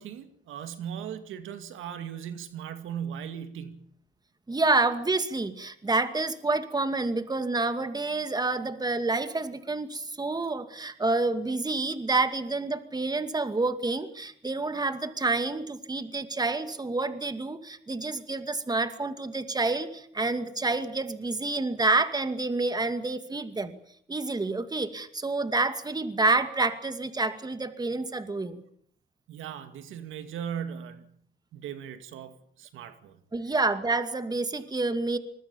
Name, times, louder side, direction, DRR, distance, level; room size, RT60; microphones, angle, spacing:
voice 1, 0.0-3.9 29.3-31.2 31.5-33.2 33.5-33.6, right 8 dB, 85° right, 9 dB, 2.3 m, -38 dB
voice 2, 4.5-23.8 24.1-28.6 33.3-35.2, right 3 dB, 20° right, 10 dB, 2.3 m, -28 dB
25.5 x 21.0 x 7.2 m, 0.63 s
cardioid pair, 90°, 20 cm